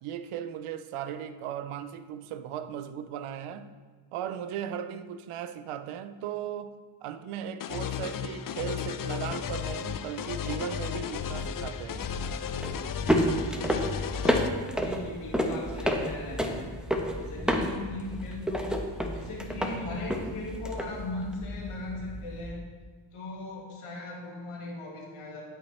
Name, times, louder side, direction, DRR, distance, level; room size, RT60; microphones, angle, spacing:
voice 1, 0.0-3.7 4.1-12.1, right 9 dB, 85° right, 0.6 m, -37 dB
sound 1, 7.6-14.5, left 8 dB, 45° left, 0.5 m, -34 dB
sound 2, 11.6-22.5, equal, ahead, 0.9 m, -31 dB
voice 2, 14.7-16.7 17.2-22.7 23.1-25.4, left 2 dB, 85° left, 1.9 m, -38 dB
12.5 x 4.5 x 3.2 m
cardioid pair, 60°, 49 cm